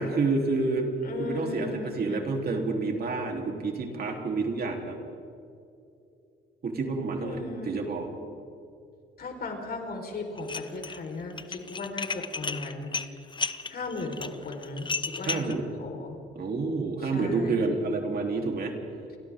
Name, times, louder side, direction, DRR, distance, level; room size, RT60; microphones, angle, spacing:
voice 1, 0.0-0.9 1.2-5.0 6.6-8.1 15.2-15.8 16.4-18.8, right 3 dB, 50° right, 1 dB, 3.6 m, -29 dB
voice 2, 1.0-2.3 7.2-7.8 9.2-12.9 13.7-16.2 17.0-17.6, left 3 dB, 50° left, 2 dB, 4.6 m, -37 dB
Dishes pots and pans, 10.4-11.0 11.3-15.5, left 4 dB, 25° left, 0.9 m, -33 dB
30.0 x 24.0 x 3.8 m, 2.6 s
cardioid pair, 90°, 20 cm